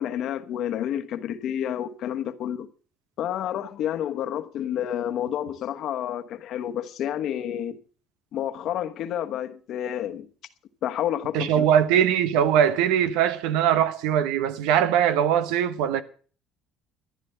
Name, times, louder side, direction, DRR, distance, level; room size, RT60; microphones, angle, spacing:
voice 1, 0.0-2.7 3.2-7.8 8.3-10.3 10.8-11.6, left 10 dB, 60° left, 1.1 m, -29 dB
voice 2, 11.3-16.0, right 9 dB, 90° right, 1.1 m, -21 dB
14.5 x 10.5 x 5.7 m
cardioid pair, 110°, 0 cm